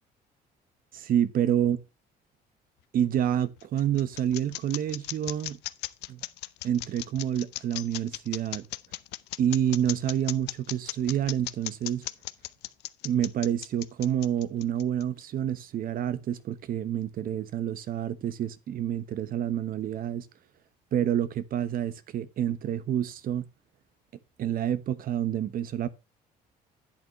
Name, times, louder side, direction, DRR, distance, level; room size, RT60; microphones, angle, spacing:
voice 1, 1.1-1.8 2.9-5.6 6.1-6.2 6.6-8.6 9.4-12.1 13.0-20.3 20.9-23.5 24.4-25.9, right 10 dB, 60° right, 1.1 m, -28 dB
sound 1, 3.2-15.2, left 17 dB, 85° left, 0.6 m, -37 dB
10.5 x 8.4 x 3.1 m
cardioid pair, 110°, 17 cm